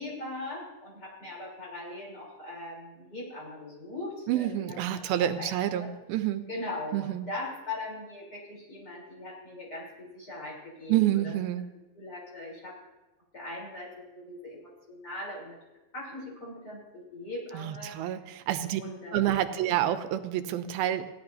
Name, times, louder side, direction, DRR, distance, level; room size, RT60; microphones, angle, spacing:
voice 1, 0.0-5.9 6.5-11.3 12.0-12.8 13.3-15.6 15.9-18.1 18.8-19.4 19.7-19.8, left 2 dB, 25° left, -4 dB, 3.9 m, -40 dB
voice 2, 4.3-6.4 6.9-7.3 10.9-11.7 17.5-18.8 19.1-21.1, right 12 dB, 85° right, 10 dB, 2.5 m, -28 dB
17.5 x 11.0 x 2.7 m, 1.1 s
omnidirectional pair, 4.2 m